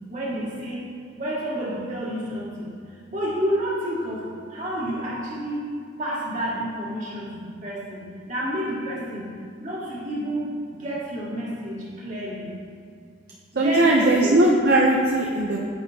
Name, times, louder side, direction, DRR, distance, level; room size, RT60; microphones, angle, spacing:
voice 1, 0.1-2.7 3.1-4.2 4.5-5.7 6.0-9.3 9.6-12.5 13.5-14.4, right 1 dB, 40° right, -6 dB, 1.9 m, -29 dB
voice 2, 13.6-15.6, right 1 dB, 55° right, -2 dB, 0.6 m, -19 dB
10.0 x 7.1 x 2.8 m, 2.2 s
head